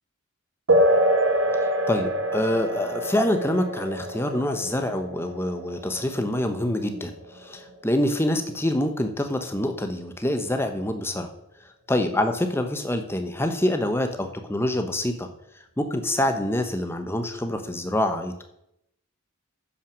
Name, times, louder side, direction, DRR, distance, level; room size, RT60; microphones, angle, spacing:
sound 1, 0.7-8.7, right 1 dB, 65° right, 1.5 m, -26 dB
voice 1, 1.5-11.3 11.9-15.3 15.8-18.4, left 1 dB, 10° left, 7 dB, 0.8 m, -26 dB
9.7 x 5.9 x 6.1 m, 0.80 s
head